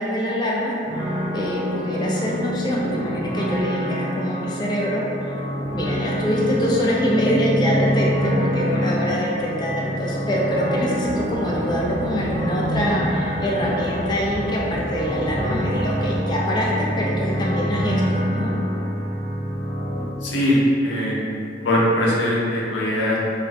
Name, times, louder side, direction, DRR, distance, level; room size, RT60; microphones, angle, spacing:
voice 1, 0.0-5.4 5.7-18.5, equal, 25° left, -4 dB, 0.3 m, -24 dB
sound 1, 0.8-20.0, equal, 45° right, 0.7 m, -26 dB
sound 2, 11.0-16.2, equal, 65° right, 1.0 m, -33 dB
voice 2, 20.2-21.2 21.6-23.2, equal, 90° left, -5 dB, 0.6 m, -20 dB
2.4 x 2.3 x 3.2 m, 2.7 s
head